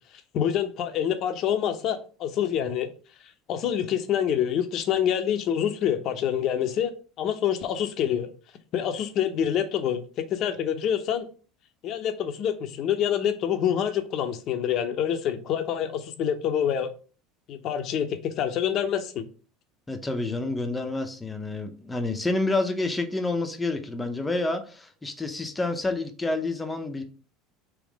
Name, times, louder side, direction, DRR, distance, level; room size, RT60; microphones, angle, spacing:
voice 1, 0.3-2.9 3.5-6.9 7.2-8.3 8.7-11.3 11.8-16.9 17.5-19.2, left 9 dB, 45° left, 0.7 m, -26 dB
voice 2, 19.9-27.0, left 2 dB, 10° left, 0.7 m, -28 dB
3.6 x 3.1 x 4.7 m
cardioid pair, 140°, 0 cm